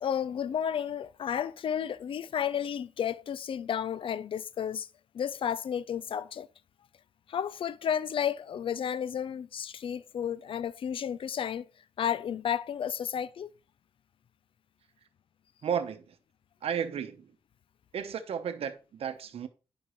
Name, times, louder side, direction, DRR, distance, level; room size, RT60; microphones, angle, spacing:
voice 1, 0.0-4.9 5.1-6.5 7.3-11.7 12.0-13.5, left 8 dB, 60° left, 0.4 m, -32 dB
voice 2, 15.6-16.2 16.6-17.3 17.9-19.5, right 8 dB, 75° right, 0.9 m, -33 dB
9.6 x 5.3 x 3.0 m
cardioid pair, 105°, 10 cm